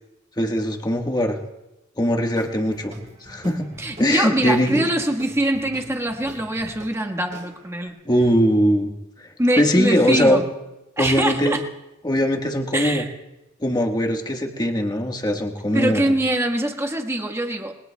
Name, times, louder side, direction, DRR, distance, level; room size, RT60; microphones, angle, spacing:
voice 1, 0.4-1.4 2.0-2.9 3.3-3.7 4.0-4.9 8.0-8.9 9.6-10.4 11.0-11.6 12.0-13.0 13.6-16.1, equal, 20° left, 2 dB, 1.4 m, -21 dB
Guitar / Drum, 2.3-7.9, right 1 dB, 35° right, 3.7 m, -44 dB
voice 2, 3.8-7.9 9.4-10.4 11.0-11.6 12.7-13.1 15.7-17.8, right 1 dB, 15° right, 4 dB, 1.4 m, -23 dB
28.5 x 21.0 x 2.3 m, 0.98 s
head